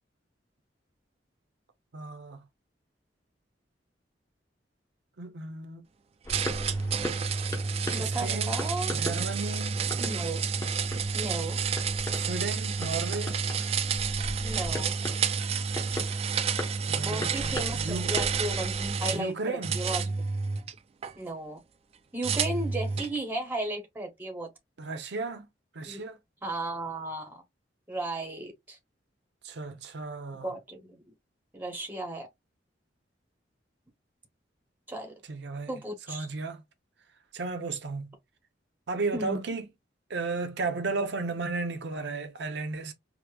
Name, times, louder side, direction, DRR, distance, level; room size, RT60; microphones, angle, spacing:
voice 1, 1.9-2.4 5.2-5.8 8.0-8.6 8.9-9.8 12.1-13.4 16.9-18.1 19.1-19.8 24.8-25.5 25.7-26.2 29.4-30.5 35.3-35.7 36.1-36.6 37.3-38.1 38.9-39.7 40.1-42.9, right 3 dB, 70° right, 0.7 m, -34 dB
sound 1, 6.2-18.9, left 1 dB, 15° left, 0.9 m, -40 dB
sound 2, 6.3-19.2 19.6-21.1 22.2-23.2, right 5 dB, 35° right, 0.3 m, -30 dB
voice 2, 7.9-9.0 10.0-10.4 11.1-11.6 14.4-15.0 17.0-20.3 21.2-21.6 22.1-24.5 25.9-26.0 26.4-27.4 27.9-28.8 30.4-31.0 31.5-32.3 34.9-35.1 35.7-36.3 39.1-39.4, right 1 dB, 10° right, 0.8 m, -35 dB
4.7 x 2.0 x 2.3 m
head